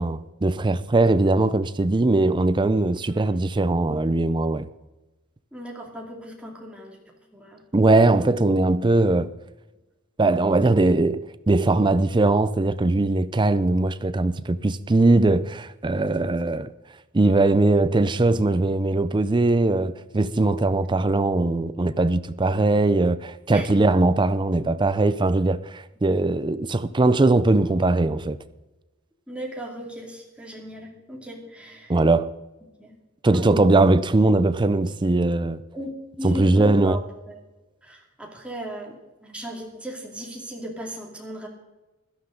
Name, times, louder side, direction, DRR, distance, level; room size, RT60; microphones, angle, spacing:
voice 1, 0.0-4.7 7.7-9.3 10.2-16.7 17.1-28.4 31.9-32.3 33.2-35.6 36.2-36.9, right 2 dB, 25° right, 0.5 m, -20 dB
voice 2, 5.5-7.6 23.5-24.0 29.3-32.0 32.8-32.9 33.3-33.6 35.7-35.9 36.2-37.4 37.8-41.5, equal, 5° right, 2.5 m, -36 dB
17.0 x 12.0 x 3.9 m
head